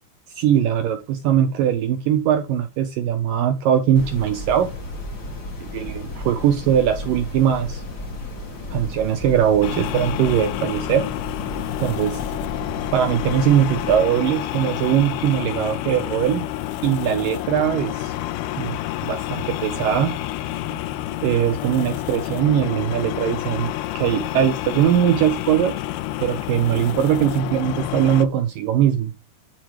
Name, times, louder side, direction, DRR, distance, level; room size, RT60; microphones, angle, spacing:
voice 1, 0.4-4.7 5.7-7.8 8.7-11.0 11.8-12.2 12.9-16.4 16.8-18.1 18.6-18.8 19.0-20.1 21.2-25.8 26.2-29.1, right 9 dB, 80° right, 2.0 m, -20 dB
sound 1, 3.9-14.0, left 1 dB, 45° left, 1.3 m, -34 dB
sound 2, 9.6-28.3, left 14 dB, 80° left, 2.4 m, -29 dB
10.5 x 4.9 x 4.7 m
omnidirectional pair, 4.9 m